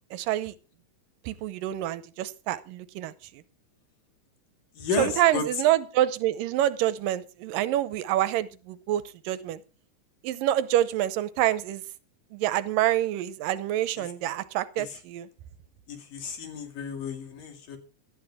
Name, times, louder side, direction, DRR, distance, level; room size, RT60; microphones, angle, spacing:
voice 1, 0.1-0.5 1.3-3.4 5.0-9.6 10.2-11.8 12.3-15.3, right 13 dB, 85° right, 15 dB, 2.5 m, -27 dB
voice 2, 4.7-5.4 14.9-15.0 15.9-17.8, left 5 dB, 80° left, 5 dB, 4.2 m, -32 dB
17.5 x 12.5 x 3.6 m, 0.34 s
omnidirectional pair, 3.8 m